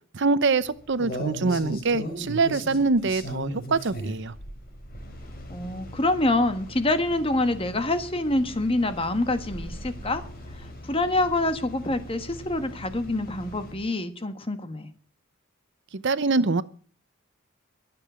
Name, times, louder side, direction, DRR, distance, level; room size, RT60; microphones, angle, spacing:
voice 1, 0.1-4.3 15.9-16.6, right 3 dB, 60° right, 15 dB, 0.8 m, -24 dB
sound 1, 0.6-13.7, equal, 45° left, 4.4 m, -39 dB
voice 2, 5.5-10.2 10.5-14.9, left 2 dB, 25° left, 10 dB, 1.4 m, -26 dB
22.5 x 7.7 x 6.2 m, 0.42 s
head